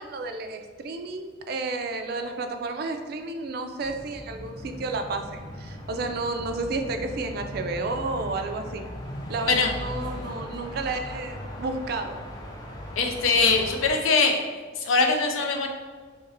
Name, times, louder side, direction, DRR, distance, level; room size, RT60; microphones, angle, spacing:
voice 1, 0.0-8.8 9.3-12.2, right 3 dB, 50° right, 6 dB, 0.3 m, -31 dB
sound 1, 3.8-14.0, left 1 dB, 20° left, 0.4 m, -38 dB
voice 2, 13.0-14.4 14.8-15.7, left 4 dB, 85° left, 3 dB, 0.5 m, -22 dB
2.9 x 2.5 x 4.1 m, 1.5 s
head